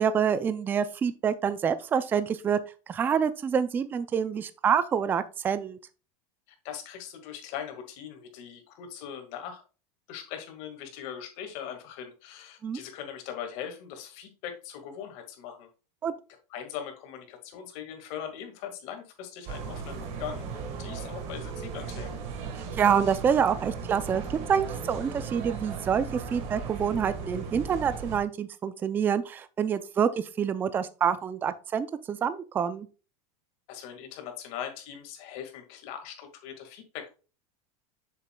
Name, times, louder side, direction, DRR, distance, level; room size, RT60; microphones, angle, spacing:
voice 1, 0.0-2.6 2.9-5.8 12.6-12.8 16.0-16.1 22.5-24.2 24.5-32.9, right 7 dB, 10° right, 0.3 m, -27 dB
voice 2, 6.6-9.6 10.1-15.7 16.5-22.1 33.7-37.1, left 9 dB, 50° left, 1.8 m, -40 dB
sound 1, 19.5-28.2, right 6 dB, 40° right, 1.5 m, -37 dB
7.4 x 6.7 x 2.2 m
supercardioid pair, 170°, 16 cm